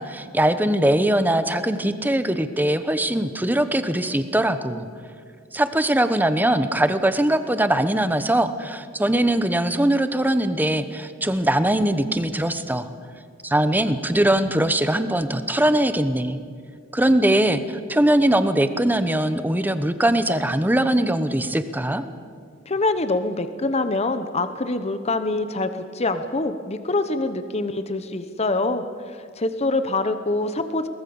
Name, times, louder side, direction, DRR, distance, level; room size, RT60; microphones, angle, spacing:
voice 1, 0.0-4.9 5.5-12.9 13.4-16.4 16.9-22.0, right 1 dB, 10° right, 11 dB, 0.9 m, -21 dB
voice 2, 22.7-28.8 29.4-30.9, left 2 dB, 30° left, 10 dB, 0.9 m, -25 dB
23.0 x 19.5 x 7.0 m, 2.2 s
head